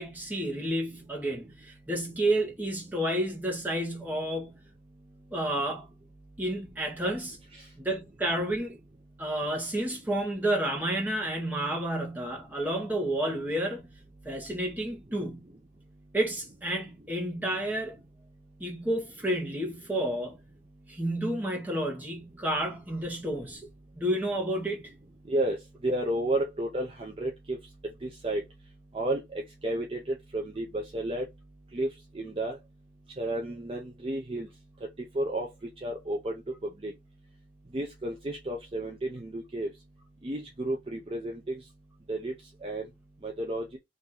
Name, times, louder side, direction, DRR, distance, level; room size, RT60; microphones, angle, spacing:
voice 1, 0.0-4.6 5.3-5.9 6.4-7.4 7.8-8.8 9.2-13.9 14.2-15.5 16.1-17.9 18.6-20.4 20.9-23.7 23.9-24.9, right 1 dB, 10° right, 1.0 m, -30 dB
voice 2, 25.3-27.6 28.0-28.4 28.9-29.2 29.6-31.2 31.7-31.9 32.1-32.6 33.2-34.5 35.1-35.5 35.8-36.4 36.8-36.9 37.7-39.7 40.2-41.6 42.1-42.3 42.6-42.9 43.2-43.8, right 1 dB, 30° right, 0.5 m, -31 dB
2.9 x 2.6 x 3.8 m
head